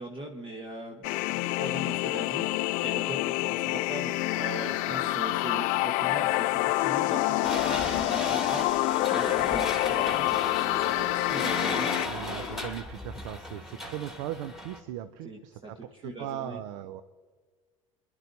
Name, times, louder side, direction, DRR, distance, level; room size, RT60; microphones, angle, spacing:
voice 1, 0.0-2.5 2.8-11.9 15.2-16.6, right 1 dB, 30° right, 1 dB, 1.3 m, -41 dB
sound 1, 1.0-12.1, left 19 dB, 55° left, 0.4 m, -27 dB
sound 2, 4.3-12.7, left 7 dB, 85° left, 0.7 m, -39 dB
sound 3, 7.4-14.8, left 1 dB, ahead, 2.1 m, -36 dB
voice 2, 12.0-17.0, right 11 dB, 65° right, 12 dB, 0.6 m, -38 dB
24.5 x 11.5 x 2.7 m, 1.5 s
hypercardioid pair, 75°, 17 cm